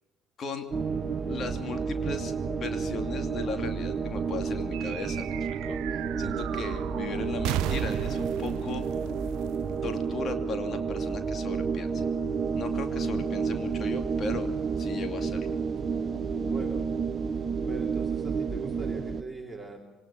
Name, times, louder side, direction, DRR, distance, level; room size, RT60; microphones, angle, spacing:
sound 1, 0.7-19.2, right 5 dB, 35° right, 0.9 m, -30 dB
voice 1, 1.3-8.9 9.8-12.0 12.5-14.5 14.8-15.6, left 5 dB, 40° left, 6 dB, 2.7 m, -37 dB
sound 2, 4.7-10.4, right 11 dB, 55° right, 0.8 m, -35 dB
voice 2, 16.5-16.9 17.7-19.8, right 3 dB, 5° right, 0 dB, 3.1 m, -40 dB
26.5 x 24.0 x 7.4 m, 1.1 s
figure-of-eight pair, 55°, 0 cm